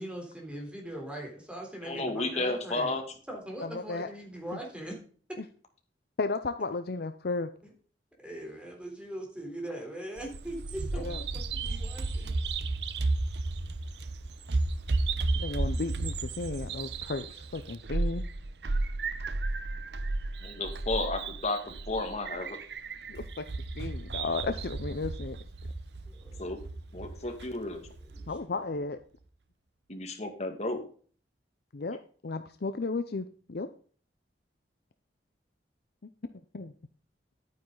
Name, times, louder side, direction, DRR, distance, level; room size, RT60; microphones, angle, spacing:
voice 1, 0.0-2.9 3.3-5.0 5.3-5.4 8.2-12.3 26.1-26.4 28.0-28.4, right 1 dB, 5° right, 1 dB, 3.6 m, -41 dB
voice 2, 1.8-3.0 20.4-22.6 26.4-26.6 26.9-27.8 29.9-30.8, left 2 dB, 40° left, 4 dB, 2.2 m, -32 dB
voice 3, 3.6-4.1 5.4-5.5 6.2-7.5 10.9-11.2 15.4-18.2 23.1-23.5 23.8-25.4 28.3-29.0 31.7-33.7 36.5-36.7, left 3 dB, 60° left, 10 dB, 0.6 m, -34 dB
Bird vocalization bird call bird song, 10.2-28.3, right 3 dB, 70° right, 0.8 m, -33 dB
11.0 x 9.3 x 3.9 m, 0.44 s
head